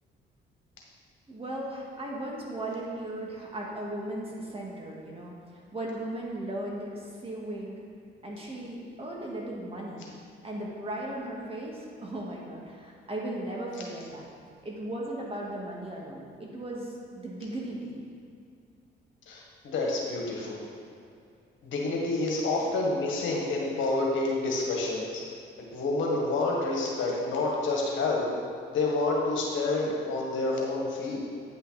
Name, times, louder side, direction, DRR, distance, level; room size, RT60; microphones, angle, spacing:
voice 1, 1.3-5.3 5.7-7.8 8.2-10.0 10.4-14.2 14.6-18.0 22.5-22.7, right 1 dB, 30° right, -3 dB, 1.8 m, -37 dB
voice 2, 19.3-20.7 21.6-25.2 25.7-28.3 28.7-31.2, left 2 dB, 75° left, -2 dB, 1.7 m, -28 dB
9.1 x 5.7 x 4.1 m, 2.4 s
cardioid pair, 90°, 20 cm